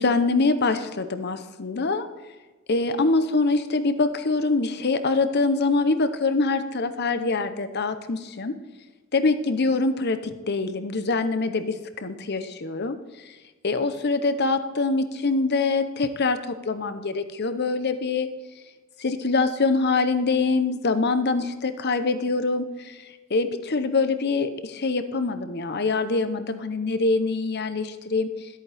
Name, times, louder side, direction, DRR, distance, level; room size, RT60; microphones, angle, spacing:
voice 1, 0.0-2.1 2.7-8.5 9.1-13.0 13.6-18.3 19.0-23.0 23.3-28.5, left 3 dB, 50° left, 10 dB, 0.8 m, -24 dB
13.5 x 8.5 x 3.5 m, 1.2 s
head